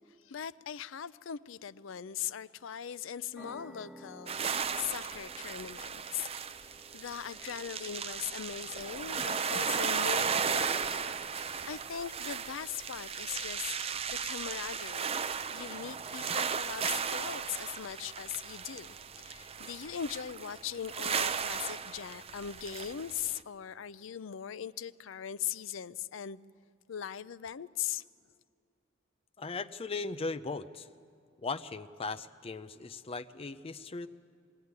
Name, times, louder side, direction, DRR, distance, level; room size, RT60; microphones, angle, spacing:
voice 1, 0.2-6.3 6.9-13.8 14.1-15.2 15.5-26.4 26.9-28.0, left 9 dB, 75° left, 17 dB, 0.5 m, -40 dB
sound 1, 3.4-10.6, right 1 dB, ahead, 1.9 m, -55 dB
sound 2, 4.3-23.4, right 6 dB, 30° right, 0.5 m, -35 dB
voice 2, 29.4-30.9 31.4-34.1, left 3 dB, 30° left, 10 dB, 0.5 m, -38 dB
21.5 x 16.5 x 9.5 m, 2.3 s
head